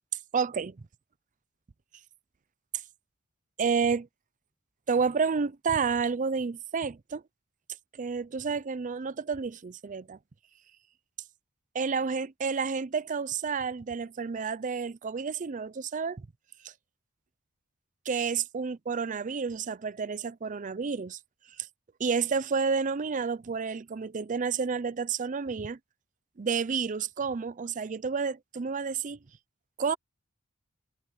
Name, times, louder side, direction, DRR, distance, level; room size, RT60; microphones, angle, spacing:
voice 1, 0.3-0.8 3.6-4.1 4.9-7.2 8.0-10.2 11.7-16.2 18.1-21.2 21.6-21.7 22.0-25.8 26.4-29.2 29.8-30.0, right 5 dB, 40° right, 0.5 m, -30 dB
head